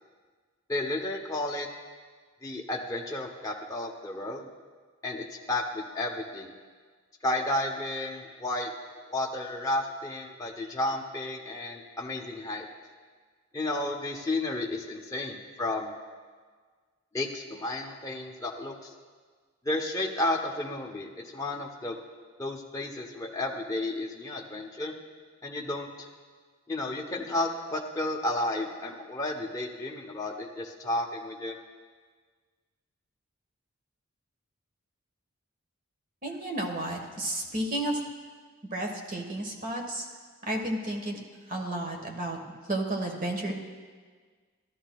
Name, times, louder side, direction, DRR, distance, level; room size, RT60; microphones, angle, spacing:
voice 1, 0.7-1.7 2.4-4.5 5.0-6.5 7.2-8.7 9.1-12.7 13.5-15.9 17.1-18.9 19.6-22.0 22.4-24.9 25.4-26.1 26.7-31.6, left 2 dB, 15° left, -1 dB, 0.7 m, -32 dB
voice 2, 36.2-38.0 38.7-40.1 40.4-41.2 41.5-42.4 42.7-43.5, right 1 dB, 40° right, 2 dB, 1.2 m, -32 dB
13.5 x 12.5 x 2.3 m, 1.5 s
head